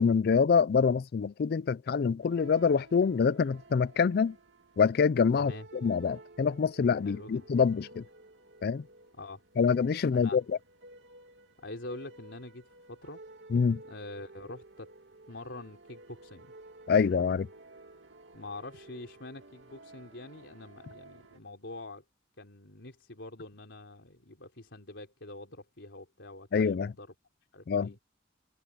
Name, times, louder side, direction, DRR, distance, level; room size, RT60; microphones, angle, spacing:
voice 1, 0.0-4.4 4.8-5.5 5.8-8.0 8.6-8.8 9.6-10.4 13.5-13.8 16.9-17.5 26.5-26.9 27.7-27.9, left 6 dB, 60° left, 0.4 m, -25 dB
sound 1, 2.2-21.4, right 2 dB, 80° right, 2.6 m, -53 dB
voice 2, 5.3-5.7 7.0-7.5 9.2-9.4 10.1-10.4 11.6-13.2 13.8-14.9 15.3-16.5 18.3-22.0 22.4-27.1 27.5-28.0, left 2 dB, 90° left, 3.7 m, -45 dB
head